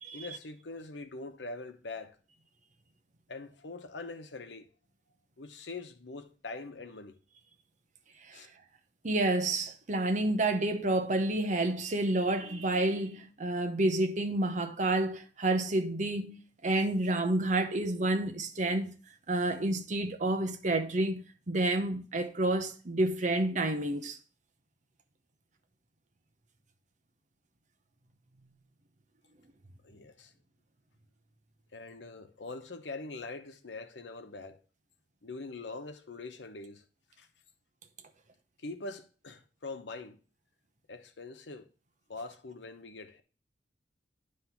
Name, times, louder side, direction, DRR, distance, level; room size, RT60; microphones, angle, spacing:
voice 1, 0.1-2.2 3.3-4.7 5.4-7.2 8.3-8.5 29.8-30.3 31.7-34.6 35.2-36.8 37.2-37.3 38.6-40.2 40.9-41.7 42.1-43.2, left 3 dB, 85° left, 0.9 m, -43 dB
voice 2, 9.0-18.9 19.3-24.2, right 2 dB, 45° right, 0.8 m, -29 dB
9.7 x 3.2 x 5.8 m
head